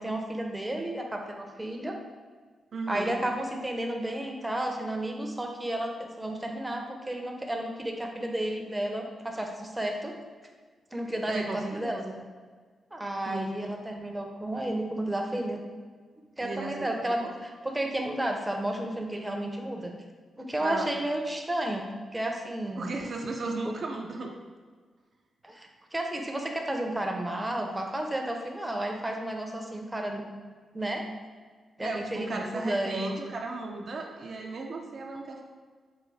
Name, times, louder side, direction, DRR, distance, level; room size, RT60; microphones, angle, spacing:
voice 1, 0.0-2.0 2.9-10.1 10.9-12.0 12.9-15.6 16.4-17.3 17.6-19.9 20.4-22.9 23.7-23.8 25.4-30.2 30.7-31.0 31.8-33.1, right 1 dB, 15° right, 2 dB, 0.6 m, -32 dB
voice 2, 2.7-3.2 11.3-12.2 13.3-13.5 16.4-17.3 20.6-20.9 22.8-24.3 31.8-35.4, right 3 dB, 60° right, 1 dB, 0.4 m, -35 dB
4.6 x 2.2 x 3.2 m, 1.5 s
cardioid pair, 70°, 0 cm